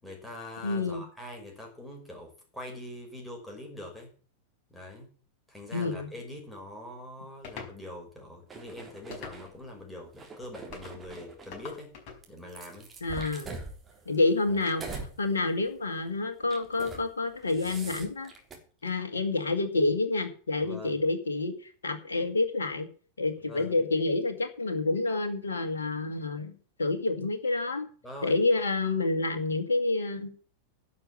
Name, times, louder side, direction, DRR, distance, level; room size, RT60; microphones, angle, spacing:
voice 1, 0.0-4.1 4.7-5.1 5.5-11.9 12.3-12.9 14.5-14.6 20.6-21.0 23.5-23.8 28.0-28.4, left 1 dB, 5° left, 0 dB, 5.9 m, -43 dB
voice 2, 0.6-1.0 5.7-6.1 13.0-13.6 14.1-18.3 18.8-21.5 21.8-22.9 23.2-26.5 26.8-27.9 28.2-30.3, left 3 dB, 70° left, 6 dB, 2.0 m, -28 dB
sound 1, 7.4-7.8 9.1-9.7 10.7-11.0 11.5-12.2, left 5 dB, 40° left, 5.0 m, -43 dB
sound 2, 8.5-9.5 10.1-11.6 12.2-15.1 15.5-15.8 16.4-17.1 17.3-18.6, right 3 dB, 20° right, 3.6 m, -43 dB
11.5 x 6.9 x 8.7 m, 0.40 s
figure-of-eight pair, 90°, 0 cm